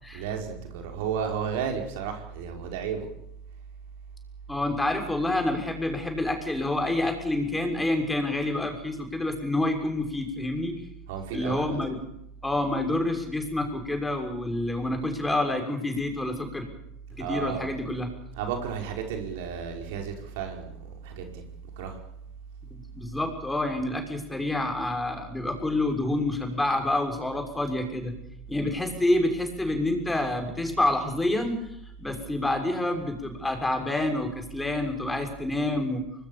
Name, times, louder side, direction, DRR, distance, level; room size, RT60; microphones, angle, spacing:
voice 1, 0.1-3.1 11.1-11.8 17.2-17.7 18.3-21.4 21.8-22.0, right 7 dB, 75° right, 3 dB, 5.3 m, -33 dB
voice 2, 4.5-10.8 11.3-12.0 12.4-16.7 17.2-18.1 22.7-28.1 28.5-31.6 32.0-36.0, left 1 dB, 10° left, 4 dB, 6.4 m, -28 dB
25.0 x 20.5 x 7.2 m, 0.80 s
hypercardioid pair, 100°, 0 cm